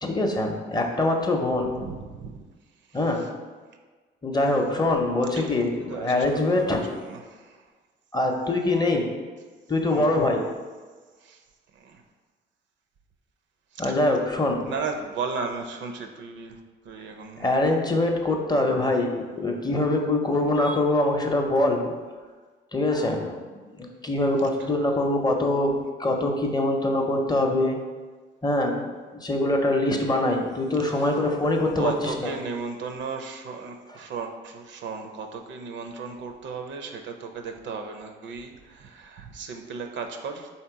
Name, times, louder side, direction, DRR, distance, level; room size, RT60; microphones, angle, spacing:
voice 1, 0.0-1.7 2.9-3.3 4.2-6.8 8.1-9.1 9.7-10.4 13.8-14.6 17.4-22.0 22.7-23.4 23.8-27.8 28.4-28.9 29.1-32.3, left 2 dB, 20° left, 2 dB, 0.6 m, -24 dB
voice 2, 1.6-2.4 2.9-3.3 5.3-5.6 5.9-7.6 9.9-10.1 11.2-11.4 11.7-12.0 13.7-17.6 24.6-24.7 30.9-31.3 31.8-40.5, right 4 dB, 65° right, 5 dB, 0.5 m, -36 dB
3.4 x 2.9 x 4.5 m, 1.4 s
cardioid pair, 90°, 20 cm